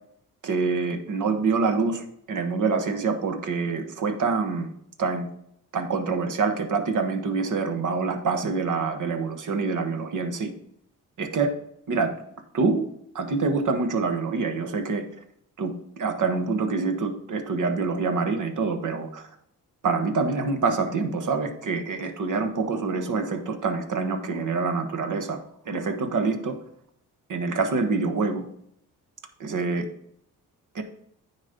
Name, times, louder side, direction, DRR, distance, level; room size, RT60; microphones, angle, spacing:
voice 1, 0.4-4.7 5.0-5.3 5.7-10.5 11.2-11.5 11.9-12.1 12.5-12.9 13.1-15.0 15.6-19.3 19.8-25.4 25.6-26.6 27.3-28.5 29.4-29.9 30.7-30.8, right 4 dB, 60° right, 7 dB, 1.4 m, -26 dB
9.5 x 4.3 x 5.1 m, 0.73 s
cardioid pair, 70°, 35 cm